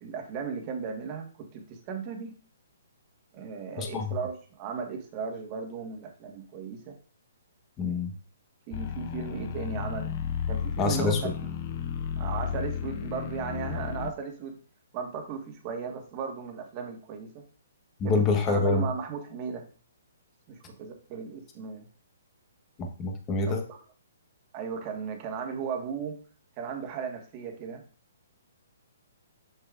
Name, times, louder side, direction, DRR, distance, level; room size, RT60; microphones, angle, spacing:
voice 1, 0.0-2.4 3.3-6.9 7.8-8.0 8.7-10.1 10.5-11.5 12.2-14.6 14.9-17.4 18.0-19.7 20.5-21.9 23.5-23.8 24.5-26.2 26.6-27.8, right 6 dB, 30° right, 3 dB, 1.6 m, -36 dB
voice 2, 3.8-4.2 7.8-8.1 10.8-11.2 18.0-18.9 22.8-23.6, left 3 dB, 20° left, 4 dB, 1.3 m, -26 dB
sound 1, 8.7-14.1, left 7 dB, 40° left, 0.6 m, -33 dB
7.3 x 6.5 x 2.6 m, 0.40 s
hypercardioid pair, 145°, 0 cm